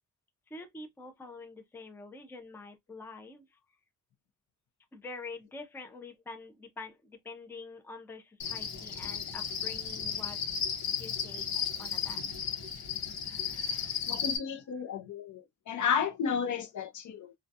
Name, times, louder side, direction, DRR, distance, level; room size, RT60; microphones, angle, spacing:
voice 1, 0.5-3.6 4.9-10.4 10.7-11.5 11.8-12.2 13.0-14.6, left 3 dB, 5° left, 0.4 m, -47 dB
Cricket, 8.4-14.4, left 7 dB, 85° left, 0.9 m, -34 dB
voice 2, 14.1-17.3, left 6 dB, 60° left, 0.5 m, -32 dB
2.3 x 2.2 x 2.6 m
cardioid pair, 130°, 35 cm